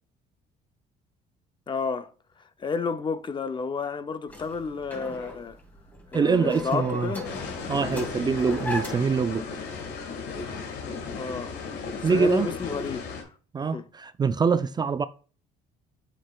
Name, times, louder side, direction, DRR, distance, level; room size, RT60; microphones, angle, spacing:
voice 1, 1.7-2.1 2.6-5.6 6.1-7.3 11.2-11.6 12.0-13.0 13.7-13.8, left 5 dB, 30° left, 0.5 m, -31 dB
sound 1, 4.3-9.2, left 2 dB, 10° left, 2.5 m, -38 dB
voice 2, 6.1-7.1 7.7-9.4 12.0-12.5 13.5-15.1, right 5 dB, 25° right, 0.3 m, -24 dB
sound 2, 7.2-13.2, left 5 dB, 75° left, 1.9 m, -35 dB
7.6 x 6.2 x 2.3 m
cardioid pair, 110°, 17 cm